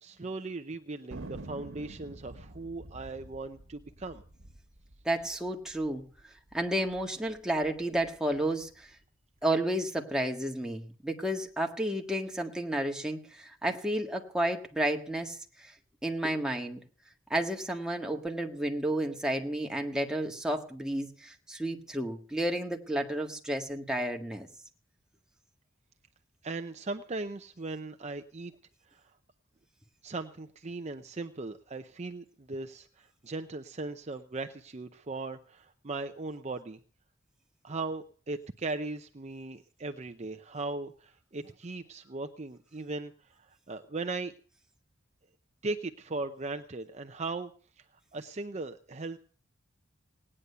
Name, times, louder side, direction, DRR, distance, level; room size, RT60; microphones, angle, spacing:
voice 1, 0.0-4.2 26.4-28.5 28.9-29.0 30.0-36.8 37.6-44.3 45.6-47.5 47.8-47.9 48.1-49.2, right 3 dB, 35° right, 7 dB, 0.7 m, -38 dB
Thunder, 1.1-5.9 6.2-6.3 6.5-7.0 7.5-8.7, right 2 dB, 75° right, 1.4 m, -47 dB
voice 2, 5.0-6.1 6.5-8.9 9.4-15.7 16.0-16.8 17.3-24.5, right 1 dB, 5° right, 2 dB, 1.6 m, -31 dB
18.0 x 9.9 x 6.8 m, 0.42 s
head